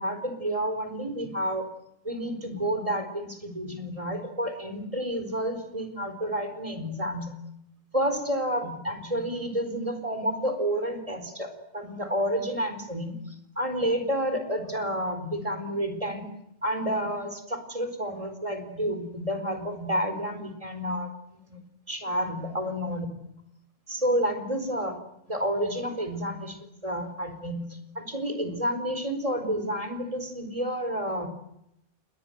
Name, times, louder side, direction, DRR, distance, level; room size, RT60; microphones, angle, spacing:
voice 1, 0.0-1.7 2.0-7.3 7.9-13.2 13.6-16.3 16.6-21.6 21.9-23.1 23.9-25.0 25.3-27.6 27.9-31.3, equal, 30° right, 8 dB, 4.4 m, -30 dB
29.0 x 21.0 x 8.0 m, 0.80 s
omnidirectional pair, 1.2 m